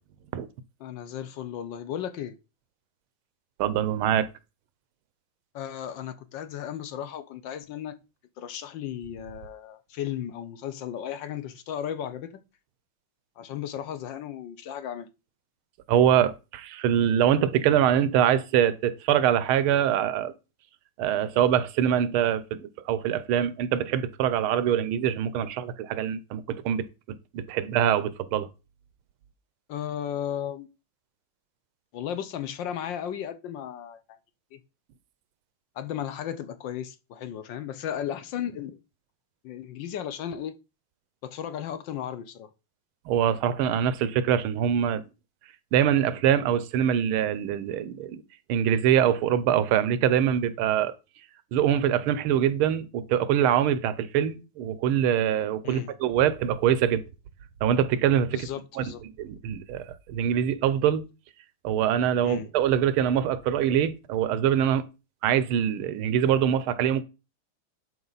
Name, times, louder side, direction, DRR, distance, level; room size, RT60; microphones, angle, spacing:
voice 1, 0.8-2.4 5.5-7.9 8.4-12.3 13.4-15.1 29.7-30.7 31.9-34.0 34.5-34.6 35.7-38.8 39.4-40.5 41.2-42.5 55.6-55.9 58.3-59.0 62.2-62.5, left 9 dB, 70° left, 1.4 m, -35 dB
voice 2, 3.6-4.3 15.9-20.3 21.0-26.8 27.3-28.5 43.1-45.0 45.7-48.2 48.5-50.9 51.5-57.0 57.6-58.5 58.7-58.8 59.2-59.8 60.1-61.0 61.6-64.9 65.2-67.0, right 9 dB, 90° right, 1.6 m, -24 dB
11.0 x 4.6 x 4.0 m
omnidirectional pair, 2.3 m